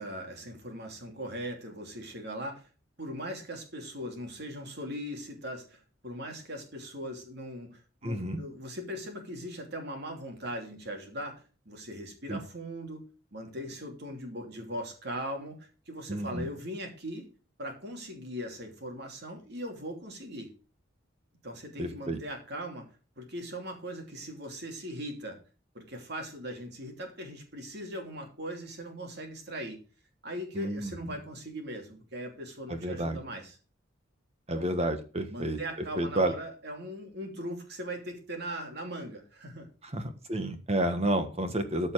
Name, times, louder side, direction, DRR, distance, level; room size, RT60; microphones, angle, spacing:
voice 1, 0.0-2.7 3.0-13.0 13.3-17.3 17.6-20.5 21.4-22.9 23.2-25.4 25.7-29.8 30.2-33.6 34.5-34.7 35.3-39.7, equal, 55° right, 3 dB, 2.9 m, -39 dB
voice 2, 8.0-8.4 12.3-12.4 16.1-16.5 21.8-22.2 30.5-31.2 32.7-33.2 34.5-35.6 36.0-36.3 39.9-41.9, right 1 dB, 30° right, 8 dB, 1.4 m, -30 dB
13.5 x 5.4 x 4.8 m, 0.35 s
head